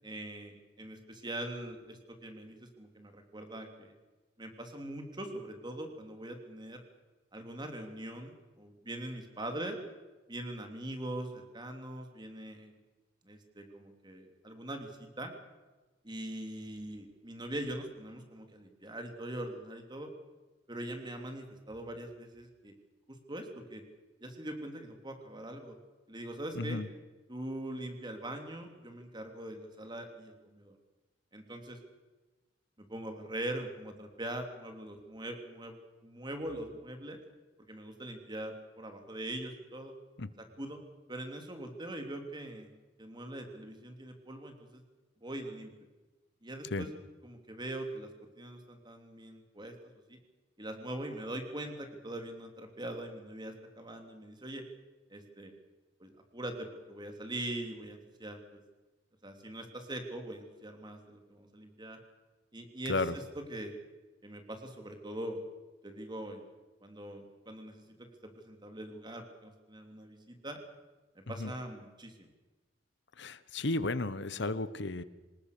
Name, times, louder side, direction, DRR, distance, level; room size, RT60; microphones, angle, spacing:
voice 1, 0.0-3.9 4.4-6.8 7.3-9.8 10.3-12.8 13.2-15.3 16.0-20.1 20.7-22.7 23.1-23.8 24.2-25.7 26.1-26.8 27.3-30.8 31.3-31.8 32.9-35.8 36.0-37.2 37.6-39.9 40.4-40.8 41.1-42.7 43.0-44.8 45.2-45.7 46.4-46.9 47.2-48.1 48.4-49.7 50.1-50.2 50.6-54.6 55.1-55.5 56.0-58.6 59.2-62.0 62.5-63.7 64.2-65.4 65.8-66.5 66.8-70.6 71.1-72.3, right 1 dB, 25° right, 5 dB, 3.2 m, -42 dB
voice 2, 73.2-75.0, left 2 dB, 65° left, 15 dB, 1.1 m, -33 dB
26.5 x 19.0 x 6.8 m, 1.2 s
head